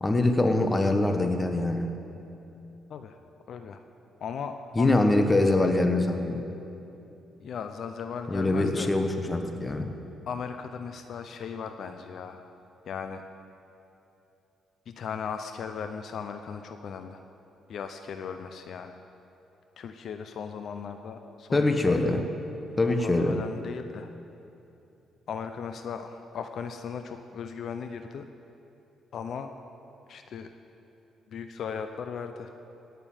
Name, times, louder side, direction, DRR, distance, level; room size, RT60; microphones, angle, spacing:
voice 1, 0.0-1.9 4.8-6.5 8.3-9.9 21.5-22.2 22.8-23.4, left 2 dB, 20° left, 5 dB, 1.4 m, -24 dB
voice 2, 3.5-3.8 4.2-5.0 7.4-8.9 10.3-12.5 12.9-13.2 14.9-17.2 17.7-19.0 19.8-22.1 22.8-24.1 25.3-28.3 29.1-29.5 30.1-30.5 31.3-32.5, left 6 dB, 65° left, 7 dB, 0.7 m, -37 dB
17.0 x 6.8 x 9.1 m, 2.9 s
cardioid pair, 90°, 0 cm